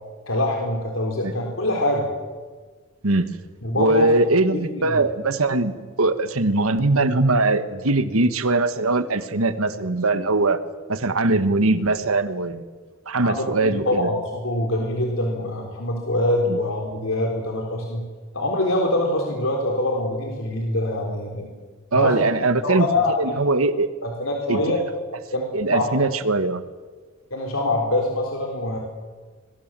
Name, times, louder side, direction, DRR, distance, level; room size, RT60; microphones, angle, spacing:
voice 1, 0.3-2.1 3.6-5.0 13.2-18.0 18.3-21.5 21.9-22.2 22.6-23.4 24.0-24.8 25.3-25.4 25.7-25.8 27.3-28.8, left 1 dB, 70° left, 1 dB, 4.0 m, -24 dB
voice 2, 3.8-10.6 10.9-12.6 13.1-14.1 16.5-16.6 21.9-22.9 23.2-23.9 24.5-24.6 25.5-26.6, right 2 dB, 85° right, 11 dB, 1.5 m, -21 dB
25.5 x 22.0 x 7.6 m, 1.4 s
head